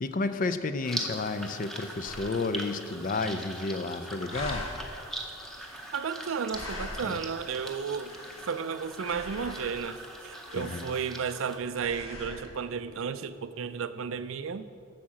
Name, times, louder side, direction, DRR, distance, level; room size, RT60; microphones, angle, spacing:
voice 1, 0.0-4.6 7.0-7.2 10.5-10.9, left 3 dB, 40° left, 11 dB, 0.4 m, -31 dB
sound 1, 0.8-11.6, right 1 dB, ahead, 0.7 m, -41 dB
sound 2, 2.0-2.4 2.8-2.9 3.0-3.9 4.3-4.9 5.5-7.4 7.8-8.7 9.0-9.9 10.4-11.4 11.7-12.5, left 1 dB, 80° left, 1.7 m, -42 dB
voice 2, 5.9-8.2 8.5-14.7, right 6 dB, 70° right, 13 dB, 0.4 m, -33 dB
8.5 x 6.4 x 7.3 m, 2.5 s
head